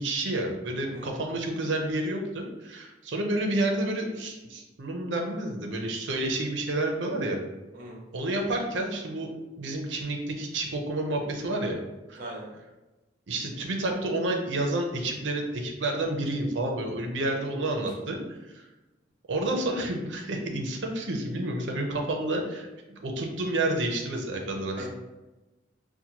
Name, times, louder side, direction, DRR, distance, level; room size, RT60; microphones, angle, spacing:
voice 1, 0.0-7.4 8.1-9.3 9.6-11.8 12.1-12.2 13.3-18.2 18.5-18.6 19.3-24.9, right 1 dB, 80° right, 2 dB, 0.6 m, -30 dB
voice 2, 12.2-12.5 17.9-18.0 24.8-24.9, right 1 dB, 45° right, -2 dB, 1.0 m, -40 dB
5.8 x 2.2 x 2.9 m, 1.1 s
head